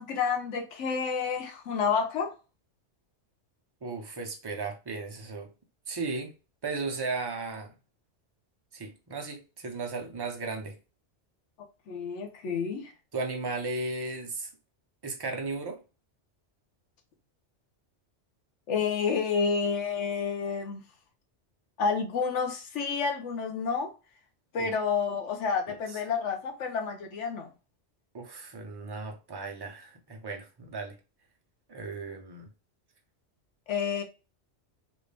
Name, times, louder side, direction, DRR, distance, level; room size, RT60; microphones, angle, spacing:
voice 1, 0.0-2.3 11.9-12.9 18.7-20.8 21.8-23.9 24.5-27.5 33.7-34.0, left 5 dB, 85° left, 1.1 m, -29 dB
voice 2, 3.8-5.5 5.9-6.3 6.6-7.7 8.7-10.8 13.1-14.5 15.0-15.8 24.6-24.7 25.7-25.8 28.1-31.0 31.7-32.5, right 3 dB, 25° right, 0.6 m, -35 dB
3.2 x 2.6 x 3.3 m
omnidirectional pair, 1.2 m